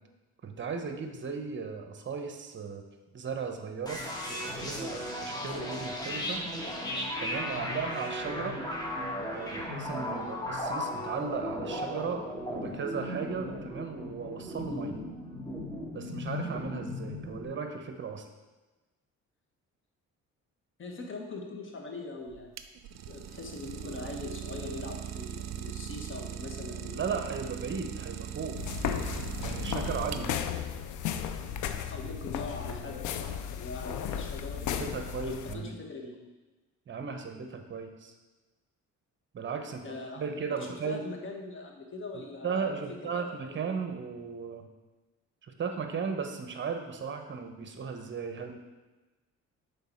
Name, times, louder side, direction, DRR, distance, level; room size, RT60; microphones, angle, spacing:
voice 1, 0.4-2.8 3.1-4.0 4.3-6.4 7.2-8.6 9.3-15.0 15.9-18.3 26.9-28.6 29.4-30.3 34.6-35.7 36.9-38.1 39.3-41.0 42.1-44.7 45.4-48.6, right 5 dB, 40° right, 6 dB, 0.9 m, -36 dB
sound 1, 3.9-17.5, left 1 dB, 15° left, 1.4 m, -36 dB
voice 2, 20.8-22.5 23.1-27.1 31.9-34.6 35.2-36.2 39.7-43.2, left 3 dB, 40° left, 2 dB, 1.2 m, -42 dB
Idling, 22.3-30.6, right 10 dB, 65° right, 0.5 m, -39 dB
sound 2, 28.6-35.5, left 8 dB, 80° left, 0.5 m, -35 dB
6.7 x 4.1 x 4.4 m, 1.2 s
cardioid pair, 90°, 30 cm